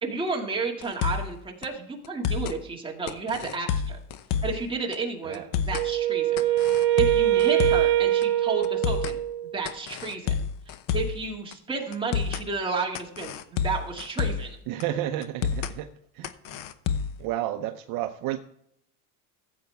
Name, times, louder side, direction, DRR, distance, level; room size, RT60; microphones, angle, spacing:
voice 1, 0.0-4.0 4.4-6.4 7.0-9.2 9.5-10.3 10.9-14.6, right 4 dB, 10° right, -1 dB, 2.1 m, -31 dB
sound 1, 0.8-1.3 1.6-1.7 2.0-2.6 3.1-4.6 4.9-5.0 5.3-5.9 6.4-7.9 8.2-8.3 8.6-9.2 9.6-11.2 11.5-11.6 11.9-12.5 12.9-14.5 14.8-14.9 15.2-15.7 16.2-17.2, left 7 dB, 50° left, 0.9 m, -29 dB
Wind instrument woodwind instrument, 5.7-9.6, right 13 dB, 75° right, 1.3 m, -23 dB
voice 2, 14.7-16.6 17.2-18.4, right 12 dB, 50° right, 7 dB, 0.8 m, -31 dB
15.0 x 8.2 x 3.5 m, 0.71 s
cardioid pair, 140°, 43 cm